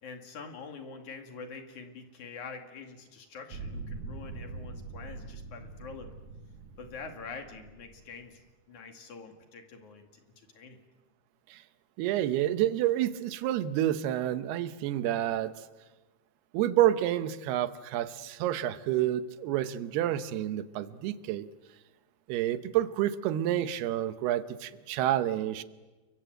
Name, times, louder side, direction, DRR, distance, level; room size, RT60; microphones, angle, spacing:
voice 1, 0.0-6.2 6.8-8.4 8.7-10.2 10.5-10.8 12.2-12.3, left 5 dB, 55° left, 5 dB, 3.3 m, -45 dB
sound 1, 3.5-8.4, right 3 dB, 55° right, 2.7 m, -43 dB
voice 2, 12.0-15.5 16.5-21.5 22.3-25.6, right 12 dB, 90° right, 12 dB, 3.0 m, -29 dB
29.0 x 23.5 x 7.8 m, 1.2 s
omnidirectional pair, 4.5 m